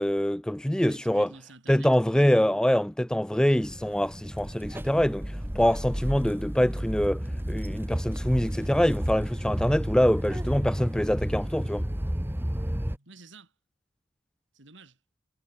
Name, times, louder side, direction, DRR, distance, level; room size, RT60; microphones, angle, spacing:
voice 1, 0.0-1.3 1.7-5.2 5.6-11.8, equal, 5° left, 0.4 m, -24 dB
voice 2, 0.8-2.5 12.9-13.5 14.5-15.0, right 3 dB, 75° right, 4.2 m, -50 dB
sound 1, 3.6-13.0, equal, 10° right, 1.4 m, -32 dB
head